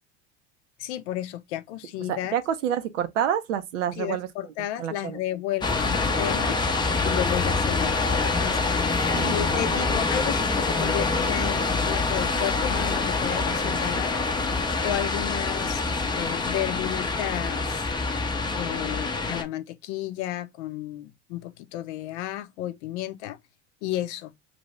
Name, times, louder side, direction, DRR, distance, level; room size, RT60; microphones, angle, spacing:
voice 1, 0.8-2.3 3.9-6.6 7.0-8.8 9.3-14.2 14.8-17.8 18.6-23.4 23.8-24.3, left 13 dB, 65° left, 0.6 m, -32 dB
voice 2, 2.1-4.3 4.8-5.2 6.1-6.2 9.1-9.3, right 9 dB, 75° right, 0.7 m, -28 dB
sound 1, 5.6-19.4, left 3 dB, 10° left, 0.6 m, -25 dB
2.7 x 2.5 x 3.1 m
hypercardioid pair, 80°, 37 cm